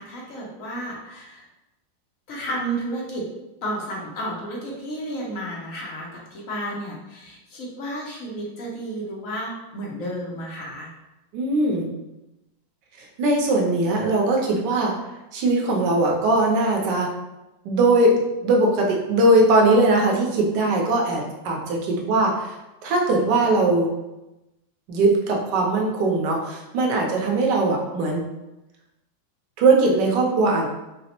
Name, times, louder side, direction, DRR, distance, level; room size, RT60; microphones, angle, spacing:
voice 1, 0.0-1.4 2.3-3.3 3.6-10.9, right 1 dB, 65° left, -3 dB, 0.8 m, -32 dB
voice 2, 11.3-11.9 13.2-14.9 15.3-17.1 17.6-22.5 22.8-23.9 24.9-28.2 29.6-30.7, right 2 dB, 75° right, 0 dB, 1.2 m, -20 dB
4.0 x 2.0 x 2.8 m, 0.98 s
omnidirectional pair, 2.0 m